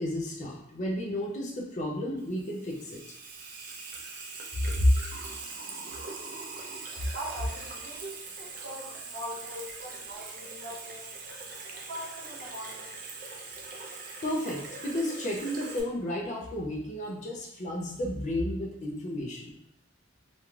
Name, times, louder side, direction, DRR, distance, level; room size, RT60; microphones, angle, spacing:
voice 1, 0.0-3.0 4.8-4.9 14.2-19.6, left 1 dB, 40° left, -1 dB, 0.4 m, -31 dB
Water tap faucet / Sink (filling or washing), 2.2-15.8, right 4 dB, 45° right, 0.4 m, -42 dB
voice 2, 7.1-11.1 11.9-13.0, equal, 90° right, -7 dB, 0.7 m, -41 dB
2.5 x 2.3 x 3.1 m, 0.76 s
head